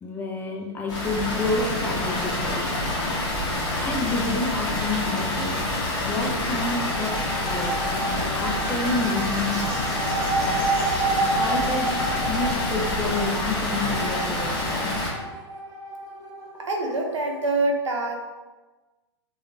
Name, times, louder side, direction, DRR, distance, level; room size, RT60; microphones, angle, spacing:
voice 1, 0.0-2.7 3.8-5.6 6.0-7.8 8.3-10.0 11.3-11.9 12.3-14.9, left 2 dB, 15° left, 0 dB, 0.4 m, -29 dB
Water, 0.9-15.1, left 1 dB, 30° left, 0.9 m, -27 dB
sound 1, 6.2-17.5, right 2 dB, 20° right, 0.7 m, -30 dB
voice 2, 16.6-18.2, right 2 dB, 85° right, 2 dB, 0.5 m, -25 dB
2.8 x 2.3 x 2.5 m, 1.2 s
hypercardioid pair, 110°, 15 cm